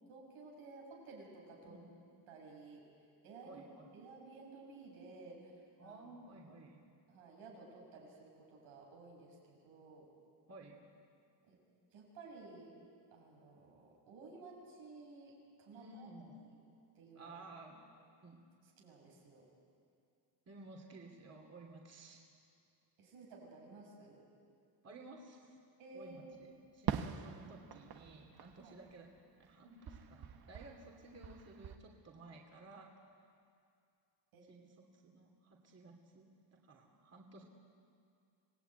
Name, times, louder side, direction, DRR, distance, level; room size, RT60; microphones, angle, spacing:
voice 1, 0.1-1.8 2.3-2.9 3.2-3.7 3.9-6.0 6.3-6.5 7.1-10.1 11.4-11.6 11.9-12.7 13.1-16.1 16.5-16.6 16.9-17.3 18.6-19.5 23.0-24.2 25.8-26.4 28.6-28.8 34.3-34.5, right 3 dB, 90° right, -2 dB, 7.2 m, -54 dB
voice 2, 1.7-2.2 3.4-3.9 5.8-6.8 10.5-10.8 15.7-16.4 17.1-17.7 18.2-18.4 20.5-22.2 24.8-25.6 25.9-29.1 29.4-32.9 34.5-37.4, right 2 dB, 35° right, 0 dB, 2.8 m, -55 dB
Fireworks, 26.9-29.5 29.8-31.8, right 8 dB, 55° right, 1.3 m, -44 dB
26.0 x 18.5 x 9.2 m, 2.4 s
cardioid pair, 125°, 46 cm